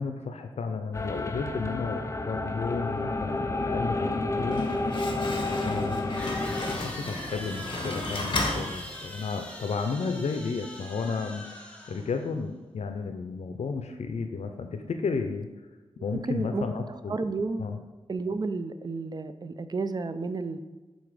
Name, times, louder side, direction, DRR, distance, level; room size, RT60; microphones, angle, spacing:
voice 1, 0.0-4.7 5.6-15.5 16.0-17.2 17.6-17.8, left 4 dB, 80° left, 6 dB, 0.5 m, -33 dB
sound 1, 0.9-6.7, left 2 dB, 25° left, 0.5 m, -30 dB
Slam, 4.3-9.4, left 2 dB, 50° left, 1.2 m, -34 dB
sound 2, 6.2-12.3, left 1 dB, 10° left, 1.3 m, -42 dB
voice 2, 16.1-16.8 17.1-17.6 18.1-20.6, right 3 dB, 40° right, 10 dB, 0.5 m, -31 dB
7.0 x 3.9 x 4.9 m, 1.2 s
wide cardioid pair, 85°, 11 cm